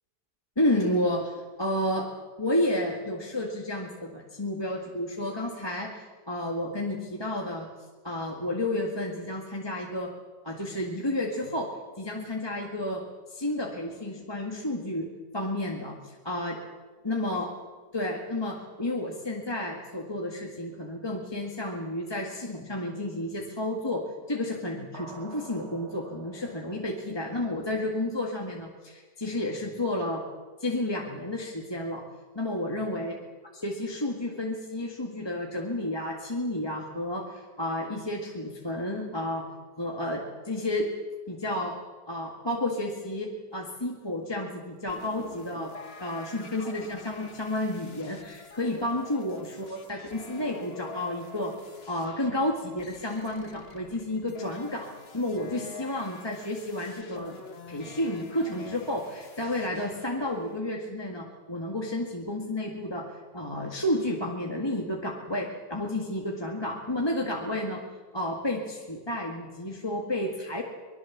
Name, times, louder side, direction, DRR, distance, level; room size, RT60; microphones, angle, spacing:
voice 1, 0.6-2.1 2.4-7.7 8.0-10.1 10.4-16.6 17.0-17.5 17.9-30.3 30.6-32.0 32.3-33.2 33.6-39.5 39.8-40.9 41.3-41.8 42.1-45.7 46.0-51.6 51.9-57.4 57.7-67.8 68.1-70.6, left 1 dB, 15° left, 0 dB, 1.9 m, -31 dB
sound 1, 24.9-27.3, right 3 dB, 45° right, 1.5 m, -47 dB
sound 2, 44.9-60.6, left 3 dB, 35° left, 1.7 m, -47 dB
24.5 x 21.0 x 7.4 m, 1.4 s
omnidirectional pair, 1.8 m